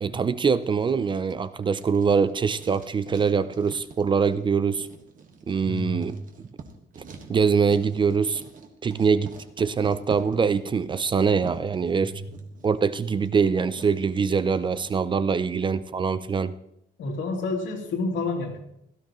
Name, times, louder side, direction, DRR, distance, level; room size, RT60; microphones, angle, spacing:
voice 1, 0.0-4.9 5.5-6.2 7.0-7.1 7.3-8.4 8.8-12.1 12.6-16.5, right 5 dB, 25° right, 14 dB, 0.4 m, -23 dB
Writing, 0.6-15.0, right 5 dB, 45° right, 1.5 m, -47 dB
voice 2, 5.6-6.1 12.0-12.3 17.0-18.6, left 3 dB, 85° left, 0 dB, 2.8 m, -29 dB
17.0 x 13.0 x 3.1 m, 0.77 s
cardioid pair, 165°, 19 cm